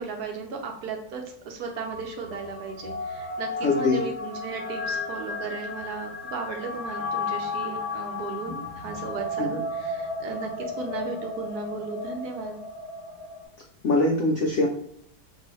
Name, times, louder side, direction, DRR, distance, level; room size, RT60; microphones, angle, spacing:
voice 1, 0.0-10.5 10.8-12.6, right 4 dB, 70° right, 2 dB, 1.1 m, -35 dB
sound 1, 1.7-13.4, left 2 dB, 35° left, 0.6 m, -34 dB
voice 2, 3.6-4.0 9.4-9.6 13.8-14.7, left 2 dB, 80° left, 1 dB, 0.6 m, -22 dB
4.7 x 2.7 x 3.0 m, 0.71 s
omnidirectional pair, 1.9 m